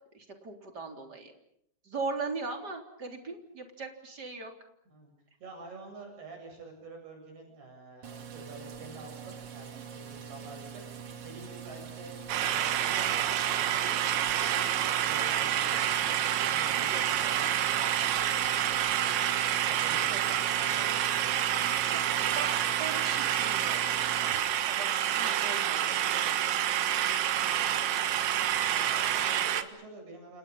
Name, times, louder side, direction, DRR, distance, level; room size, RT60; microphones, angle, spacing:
voice 1, 0.1-1.3 1.9-4.5 16.8-17.1 20.1-20.4 21.9-22.0 22.4-26.5 27.3-27.5, right 3 dB, 25° right, 4 dB, 3.6 m, -40 dB
voice 2, 5.4-10.8 11.2-13.9 14.4-19.1 19.6-22.6 27.3-28.2 28.7-30.4, right 2 dB, 60° right, 3 dB, 10.0 m, -48 dB
sound 1, 8.0-24.4, right 7 dB, 45° right, 2.2 m, -44 dB
sound 2, 12.3-29.6, right 11 dB, 80° right, 3.8 m, -28 dB
29.0 x 29.0 x 5.6 m, 0.73 s
omnidirectional pair, 5.1 m